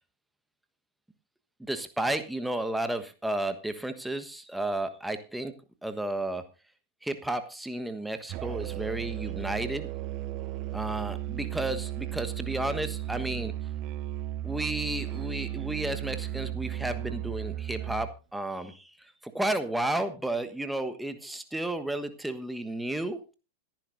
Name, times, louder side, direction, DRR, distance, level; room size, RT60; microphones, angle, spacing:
voice 1, 1.6-5.5 5.8-6.4 7.0-9.9 10.7-13.5 14.4-23.3, right 1 dB, 5° right, 9 dB, 1.3 m, -32 dB
Musical instrument, 8.3-18.2, right 13 dB, 40° right, 0.6 m, -35 dB
26.0 x 10.5 x 2.6 m, 0.31 s
figure-of-eight pair, 90°, 0 cm